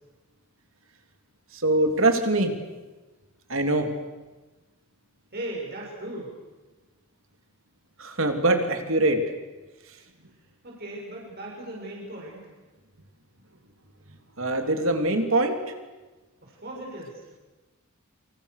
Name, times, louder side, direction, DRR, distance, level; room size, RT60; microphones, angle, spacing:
voice 1, 1.5-2.6 3.5-3.9 8.0-9.2 14.1-15.6, right 2 dB, 65° right, 5 dB, 3.4 m, -23 dB
voice 2, 5.3-6.3 10.6-12.5 16.4-17.2, right 1 dB, 45° right, -2 dB, 7.4 m, -37 dB
28.5 x 27.0 x 6.8 m, 1.2 s
head